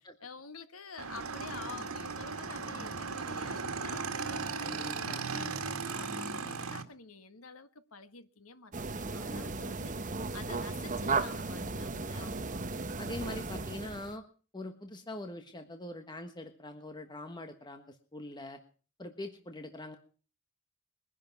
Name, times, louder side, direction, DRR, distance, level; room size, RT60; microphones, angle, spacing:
voice 1, 0.2-4.4 4.7-12.3, left 4 dB, 85° left, 1.7 m, -49 dB
Motorcycle / Engine, 1.0-6.8, right 4 dB, 90° right, 2.0 m, -37 dB
voice 2, 4.6-5.2 9.1-9.5 12.2-12.6 13.0-14.2 14.5-18.6 19.0-20.0, left 1 dB, 20° left, 1.4 m, -43 dB
sound 1, 8.7-14.2, right 3 dB, 35° right, 1.1 m, -35 dB
22.5 x 11.0 x 6.0 m
head